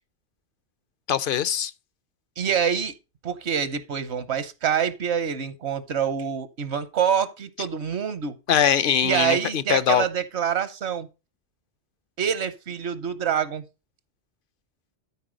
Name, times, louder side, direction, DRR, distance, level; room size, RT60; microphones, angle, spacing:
voice 1, 1.1-1.7 8.5-10.0, left 9 dB, 60° left, 0.8 m, -22 dB
voice 2, 2.4-2.9 3.2-8.4 9.0-11.1 12.2-13.6, right 8 dB, 80° right, 1.2 m, -26 dB
12.5 x 4.6 x 5.1 m
omnidirectional pair, 1.1 m